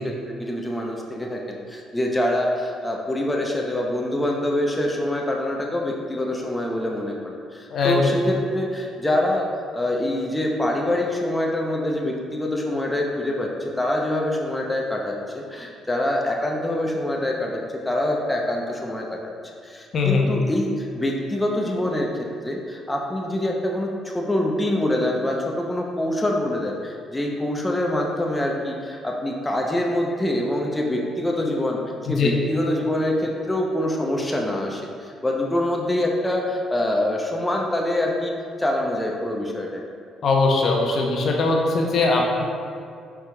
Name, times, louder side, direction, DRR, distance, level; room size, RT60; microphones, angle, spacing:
voice 1, 0.4-9.5 9.7-19.2 19.6-31.8 32.1-38.3 38.6-39.8, left 1 dB, 10° left, 0 dB, 0.6 m, -25 dB
voice 2, 7.7-8.1 19.9-20.4 32.1-32.3 40.2-42.4, left 3 dB, 60° left, 0 dB, 0.6 m, -20 dB
4.9 x 4.6 x 2.2 m, 2.3 s
supercardioid pair, 75°, 0 cm